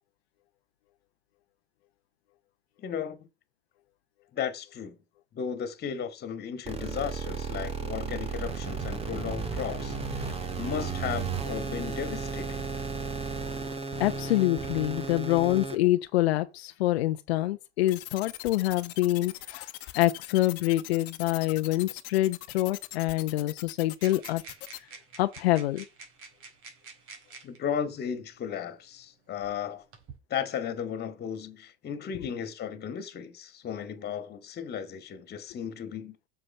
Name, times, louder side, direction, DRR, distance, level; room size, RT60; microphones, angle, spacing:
voice 1, 2.8-3.3 4.3-5.0 5.3-12.6 27.4-29.8 30.3-36.2, left 8 dB, 30° left, 2.2 m, -35 dB
sound 1, 6.7-15.7, right 5 dB, 20° right, 1.8 m, -34 dB
voice 2, 14.0-19.7 19.9-24.4 25.2-25.9, left 16 dB, 75° left, 0.9 m, -26 dB
sound 2, 17.9-24.8, left 20 dB, 50° left, 1.3 m, -41 dB
sound 3, 24.0-27.6 28.6-28.7 29.4-30.2, right 4 dB, 45° right, 4.0 m, -48 dB
8.0 x 7.2 x 5.6 m
hypercardioid pair, 115°, 32 cm